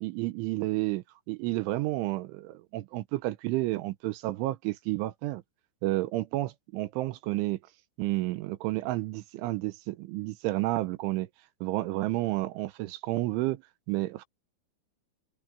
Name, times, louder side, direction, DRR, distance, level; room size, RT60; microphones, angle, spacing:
voice 1, 0.0-5.4 5.8-7.6 8.0-11.3 11.6-13.6 13.9-14.3, right 18 dB, 85° right, 3.1 m, -31 dB
open air
omnidirectional pair, 5.7 m